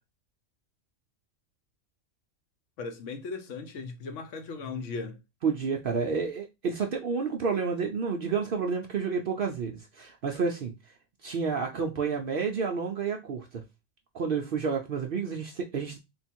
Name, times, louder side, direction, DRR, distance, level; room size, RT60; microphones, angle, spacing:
voice 1, 2.8-5.2, left 4 dB, 70° left, 1.0 m, -37 dB
voice 2, 5.4-10.7 11.2-13.6 14.1-16.0, right 5 dB, 65° right, 0.6 m, -30 dB
3.6 x 2.3 x 4.3 m
omnidirectional pair, 1.4 m